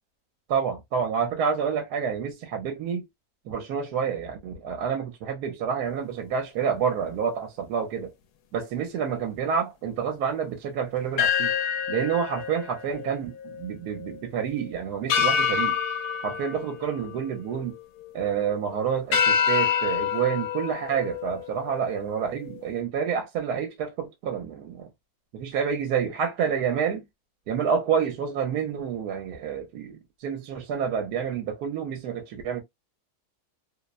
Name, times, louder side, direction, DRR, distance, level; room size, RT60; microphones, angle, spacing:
voice 1, 0.5-3.1 3.5-8.1 8.5-11.5 11.9-15.8 16.2-17.8 18.1-24.9 25.3-27.0 27.5-32.6, right 7 dB, 80° right, 1.2 m, -28 dB
sound 1, 11.2-13.7 14.0-14.1 15.1-17.6 18.1-18.5 19.1-21.9, left 7 dB, 75° left, 1.1 m, -27 dB
2.8 x 2.1 x 2.3 m
omnidirectional pair, 1.7 m